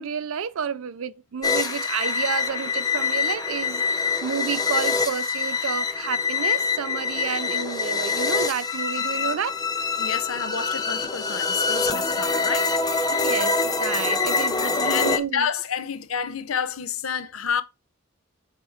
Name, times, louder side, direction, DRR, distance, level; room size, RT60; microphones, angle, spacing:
voice 1, 0.0-9.6 13.1-15.5, right 7 dB, 75° right, 0.4 m, -30 dB
sound 1, 1.4-15.2, left 4 dB, 20° left, 0.6 m, -25 dB
voice 2, 10.0-12.8 14.6-17.6, left 7 dB, 85° left, 0.7 m, -29 dB
6.7 x 4.6 x 3.5 m
head